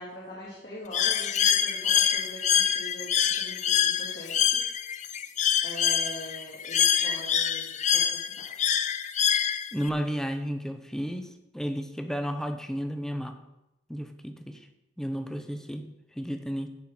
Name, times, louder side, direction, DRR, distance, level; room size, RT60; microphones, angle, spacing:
voice 1, 0.0-4.6 5.6-8.4, left 1 dB, 60° left, -7 dB, 3.0 m, -43 dB
Bird, 0.9-9.9, left 8 dB, 40° left, 0.5 m, -25 dB
voice 2, 9.7-13.4 13.9-14.7 15.0-16.7, equal, 5° left, 7 dB, 0.7 m, -33 dB
16.0 x 5.6 x 4.4 m, 0.89 s
head